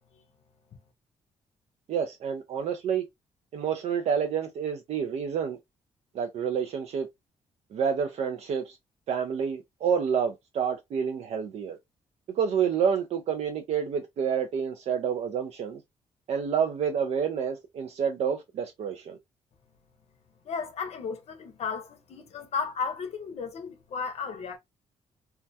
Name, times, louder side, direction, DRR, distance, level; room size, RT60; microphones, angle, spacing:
voice 1, 1.9-3.0 3.5-5.6 6.2-7.1 7.7-8.8 9.1-11.8 12.3-15.8 16.3-19.2, right 7 dB, 65° right, 0.4 m, -28 dB
voice 2, 20.4-24.6, left 5 dB, 60° left, 0.6 m, -34 dB
2.2 x 2.1 x 2.5 m
cardioid pair, 105°, 12 cm